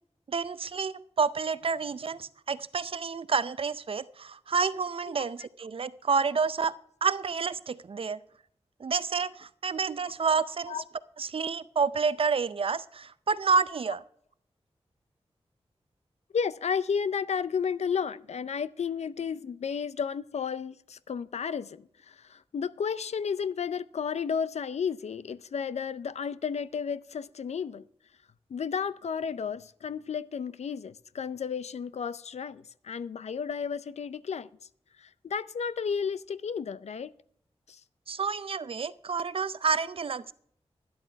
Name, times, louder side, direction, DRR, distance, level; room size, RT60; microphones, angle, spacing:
voice 1, 0.3-6.7 7.0-8.2 8.8-10.8 11.2-14.0 38.1-40.3, right 5 dB, 55° right, 16 dB, 0.5 m, -29 dB
voice 2, 5.1-5.5 10.7-10.8 16.3-27.9 28.5-34.5 35.0-37.1 37.7-37.8, left 6 dB, 85° left, 16 dB, 0.5 m, -33 dB
12.5 x 11.0 x 3.4 m, 0.66 s
wide cardioid pair, 100°, 11 cm